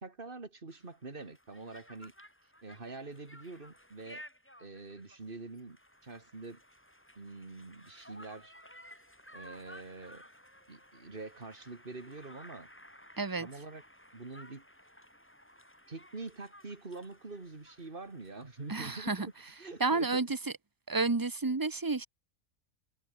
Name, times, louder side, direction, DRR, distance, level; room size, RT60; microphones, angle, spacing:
voice 1, 0.0-2.1 2.6-4.2 4.6-5.8 6.0-6.6 7.2-8.5 9.3-10.2 10.7-12.7 13.4-13.8 14.1-14.6 15.9-19.3 19.6-20.2, right 3 dB, 40° right, 2.8 m, -45 dB
Conversation, 0.7-20.2, equal, 10° left, 5.2 m, -56 dB
voice 2, 13.2-13.5 18.7-19.3 19.8-20.4 20.9-22.1, right 3 dB, 15° right, 0.9 m, -30 dB
omnidirectional pair, 1.5 m